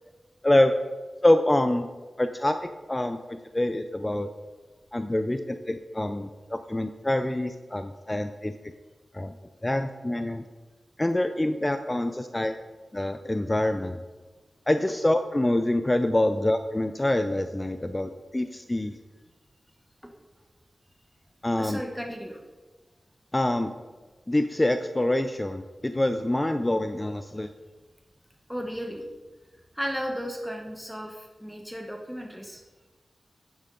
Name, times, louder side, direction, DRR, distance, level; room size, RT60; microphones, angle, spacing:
voice 1, 1.2-1.9 2.2-4.3 4.9-8.5 9.1-9.4 9.6-10.4 11.0-12.5 12.9-14.0 14.7-19.0 21.4-21.8 23.3-23.7 24.3-27.5, left 1 dB, 15° left, 8 dB, 0.4 m, -26 dB
voice 2, 21.6-22.4 28.5-29.0 29.7-32.6, equal, ahead, 2 dB, 0.9 m, -34 dB
10.5 x 9.3 x 3.8 m, 1.3 s
wide cardioid pair, 110°, 0 cm